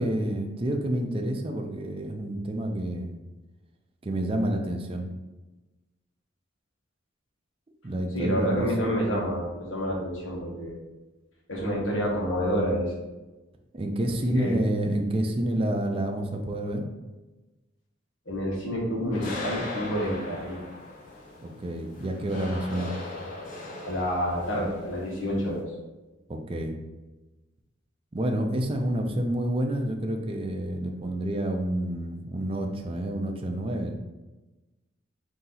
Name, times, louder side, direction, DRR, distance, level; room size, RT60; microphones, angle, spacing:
voice 1, 0.0-3.1 4.0-5.1 7.8-8.9 13.7-16.8 21.4-22.9 26.3-26.8 28.1-34.0, right 1 dB, 30° right, 3 dB, 0.5 m, -29 dB
voice 2, 8.1-10.8 11.5-12.9 14.3-14.6 18.3-20.6 23.8-25.7, equal, 85° left, -3 dB, 1.3 m, -28 dB
sound 1, 19.1-25.6, left 2 dB, 45° left, 0.8 m, -39 dB
4.1 x 2.8 x 3.9 m, 1.1 s
head